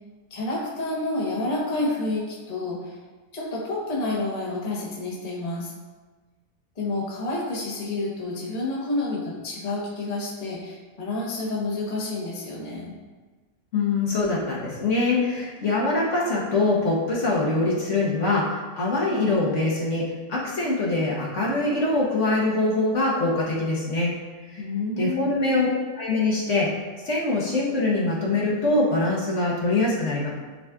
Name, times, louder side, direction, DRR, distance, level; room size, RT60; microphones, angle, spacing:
voice 1, 0.3-3.0 3.3-5.7 6.8-12.9 24.6-25.7, left 2 dB, 30° left, -5 dB, 1.1 m, -29 dB
voice 2, 13.7-24.1 24.5-24.6 25.0-25.7 26.0-26.7 27.0-30.3, left 2 dB, 60° left, -5 dB, 1.4 m, -23 dB
9.6 x 4.2 x 2.3 m, 1.3 s
omnidirectional pair, 1.5 m